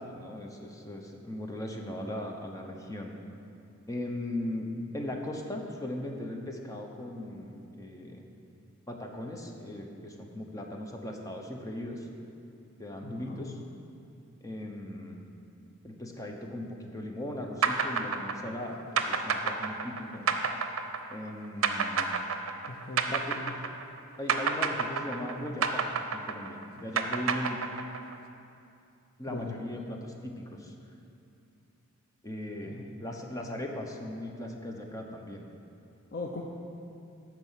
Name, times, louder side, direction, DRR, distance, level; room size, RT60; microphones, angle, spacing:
voice 1, 0.0-3.1 3.9-4.7 4.9-8.2 8.9-12.1 12.8-13.6 14.4-15.2 15.8-20.3 21.1-22.1 23.1-23.4 24.2-25.9 26.1-27.6 29.2-30.7 32.2-35.5, left 1 dB, 15° left, 2 dB, 0.9 m, -38 dB
voice 2, 13.0-13.6 22.7-23.5 29.3-29.5 32.7-32.8 36.1-36.4, left 3 dB, 45° left, 0 dB, 0.6 m, -40 dB
sound 1, 17.6-24.0 24.3-28.1, right 5 dB, 75° right, 0.6 m, -29 dB
12.0 x 4.5 x 7.4 m, 2.6 s
head